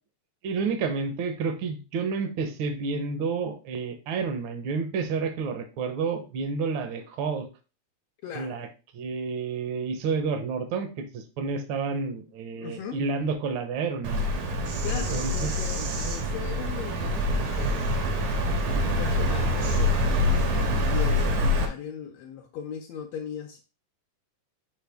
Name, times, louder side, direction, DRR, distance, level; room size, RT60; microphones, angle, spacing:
voice 1, 0.4-7.5 8.3-8.7 8.9-14.2 14.9-15.5, right 5 dB, 70° right, 1.2 m, -30 dB
voice 2, 8.2-8.6 12.6-13.0 14.8-17.9 18.7-20.3 20.6-23.6, left 8 dB, 75° left, 1.6 m, -38 dB
Bird vocalization bird call bird song, 14.0-21.7, left 1 dB, 90° right, 2.7 m, -25 dB
6.5 x 4.7 x 3.5 m
omnidirectional pair, 3.5 m